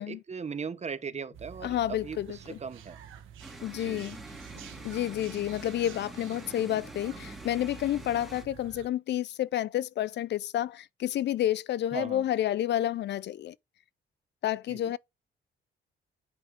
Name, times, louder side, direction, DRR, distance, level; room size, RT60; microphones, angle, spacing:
voice 1, 0.0-3.0 3.7-4.0 11.9-12.3 14.7-14.9, right 6 dB, 35° right, 1.0 m, -38 dB
sound 1, 1.3-8.9, right 8 dB, 85° right, 1.4 m, -48 dB
voice 2, 1.6-2.6 3.6-4.2 4.8-13.5 14.4-15.0, left 12 dB, 60° left, 0.5 m, -30 dB
sound 2, 3.4-8.4, right 1 dB, ahead, 3.0 m, -46 dB
9.6 x 5.3 x 3.6 m
cardioid pair, 90°, 20 cm